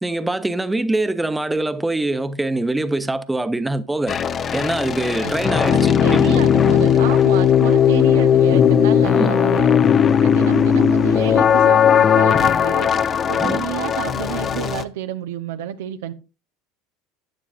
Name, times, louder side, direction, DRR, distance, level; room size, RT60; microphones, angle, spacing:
voice 1, 0.0-4.2 4.5-6.4 9.1-9.4 13.4-13.6, right 2 dB, 10° right, 1.1 m, -23 dB
sound 1, 4.1-14.8, left 8 dB, 40° left, 0.9 m, -17 dB
voice 2, 5.2-9.8 10.2-12.9 13.3-16.1, right 11 dB, 80° right, 1.1 m, -29 dB
15.5 x 9.6 x 2.6 m
hypercardioid pair, 75°, 0 cm